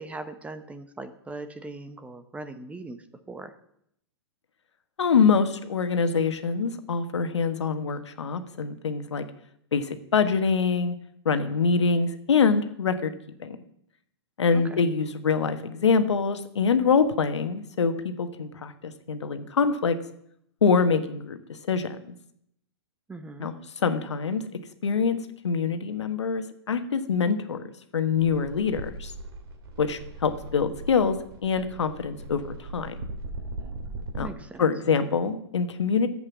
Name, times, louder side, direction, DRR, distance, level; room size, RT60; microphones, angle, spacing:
voice 1, 0.0-3.5 14.5-14.8 23.1-23.5 34.2-34.7, right 2 dB, 10° right, 10 dB, 0.8 m, -40 dB
voice 2, 5.0-9.2 9.7-10.9 11.2-13.1 13.4-13.6 14.4-19.9 20.6-22.1 23.4-24.4 24.8-25.2 25.4-29.1 29.8-31.1 31.4-32.9 34.1-34.3 34.6-36.1, left 5 dB, 85° left, 8 dB, 1.3 m, -25 dB
sound 1, 28.1-34.3, right 2 dB, 55° right, 2.4 m, -39 dB
11.0 x 8.0 x 7.2 m, 0.73 s
hypercardioid pair, 130°, 14 cm